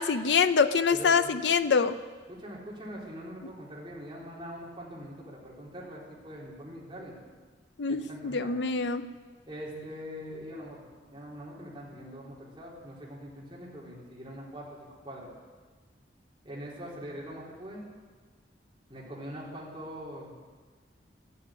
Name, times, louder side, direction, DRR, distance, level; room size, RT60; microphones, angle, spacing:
voice 1, 0.0-1.9 7.8-9.1, left 5 dB, 85° left, 10 dB, 0.6 m, -25 dB
voice 2, 0.9-1.3 2.3-7.1 7.9-8.5 9.5-10.8 11.1-15.3 16.4-17.8 18.9-20.4, equal, 25° right, -5 dB, 3.9 m, -43 dB
13.0 x 10.0 x 9.9 m, 1.4 s
head